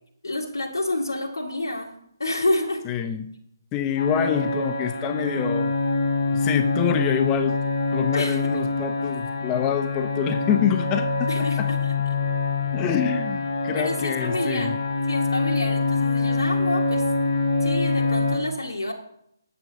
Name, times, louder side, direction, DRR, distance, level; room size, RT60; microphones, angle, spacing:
voice 1, 0.2-1.9 2.2-2.8 8.1-8.6 11.3-11.9 13.7-14.8 15.1-17.3 17.6-18.9, left 1 dB, 75° left, -2 dB, 2.4 m, -28 dB
voice 2, 2.9-3.3 3.7-5.7 6.3-7.6 7.9-11.7 12.7-14.8, left 9 dB, 20° left, 8 dB, 0.9 m, -26 dB
sound 1, 4.0-18.4, left 3 dB, 55° left, 4.3 m, -25 dB
9.9 x 9.6 x 6.4 m, 0.74 s
figure-of-eight pair, 145°, 2 cm